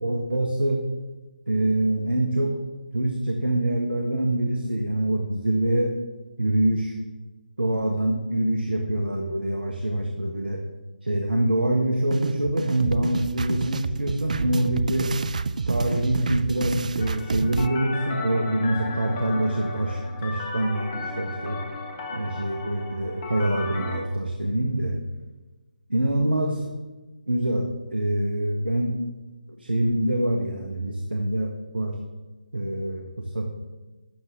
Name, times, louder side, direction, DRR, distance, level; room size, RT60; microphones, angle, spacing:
voice 1, 0.0-0.8 1.5-2.5 2.9-5.9 6.4-6.9 7.6-10.6 11.0-15.1 15.7-21.7 22.1-25.0 25.9-26.7 27.3-29.0 29.6-32.0 32.5-33.5, right 1 dB, 80° right, 2 dB, 1.3 m, -25 dB
sound 1, 12.1-17.7, right 4 dB, 50° right, 0.4 m, -29 dB
sound 2, 17.0-24.0, left 3 dB, 20° left, 1.0 m, -35 dB
12.0 x 7.6 x 3.7 m, 1.2 s
figure-of-eight pair, 150°, 5 cm